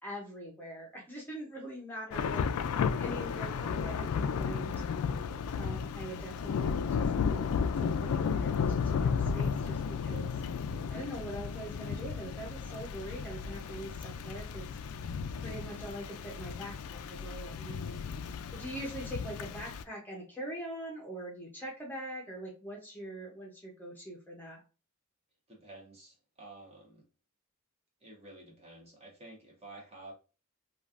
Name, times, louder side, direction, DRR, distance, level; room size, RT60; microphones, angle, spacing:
voice 1, 0.0-4.8 5.5-10.4 10.9-14.7 15.4-18.0 18.5-24.6, right 1 dB, 10° left, -1 dB, 0.7 m, -43 dB
Thunder / Rain, 2.1-19.8, left 6 dB, 90° left, 0.3 m, -33 dB
voice 2, 25.5-27.0 28.0-30.1, right 2 dB, 30° right, 0 dB, 1.0 m, -51 dB
3.1 x 2.4 x 2.4 m, 0.32 s
head